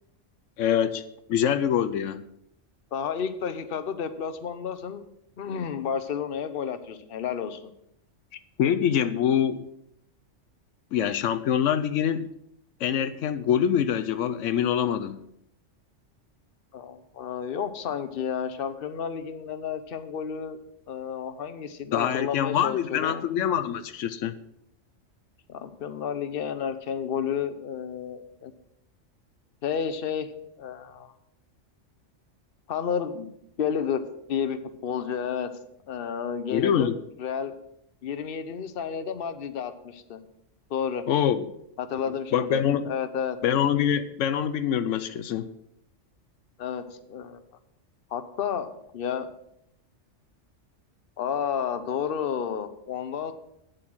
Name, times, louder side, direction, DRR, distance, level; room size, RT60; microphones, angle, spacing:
voice 1, 0.6-1.0 1.3-2.2 8.6-9.6 10.9-12.3 12.8-15.2 21.9-24.3 36.5-36.9 41.1-41.5 42.3-42.8 43.4-45.5, left 9 dB, 85° left, 10 dB, 1.0 m, -24 dB
voice 2, 2.9-5.0 5.4-7.7 16.7-20.6 20.9-23.3 25.5-28.5 29.6-30.3 30.6-31.1 32.7-33.3 33.6-34.0 34.3-35.5 35.9-36.9 37.2-37.5 38.0-40.2 40.7-41.0 41.8-43.4 46.6-46.8 47.1-47.4 48.1-49.3 51.2-53.3, left 7 dB, 55° left, 10 dB, 1.0 m, -31 dB
9.4 x 7.7 x 6.2 m, 0.77 s
omnidirectional pair, 1.3 m